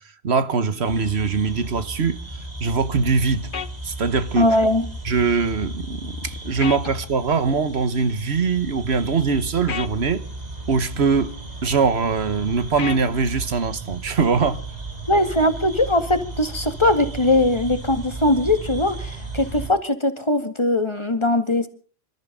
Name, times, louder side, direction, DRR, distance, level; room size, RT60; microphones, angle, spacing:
voice 1, 0.2-2.2 2.6-3.5 3.8-4.5 5.0-10.2 10.7-11.3 11.6-14.6, right 5 dB, 90° right, 1.5 m, -22 dB
sound 1, 0.8-19.7, right 2 dB, 40° right, 3.4 m, -35 dB
sound 2, 3.5-3.7 6.6-6.8 9.7-9.9 12.8-13.0, left 7 dB, 55° left, 1.1 m, -29 dB
voice 2, 4.4-4.9 15.1-21.7, left 1 dB, 25° left, 2.0 m, -20 dB
27.0 x 13.5 x 3.8 m
omnidirectional pair, 1.1 m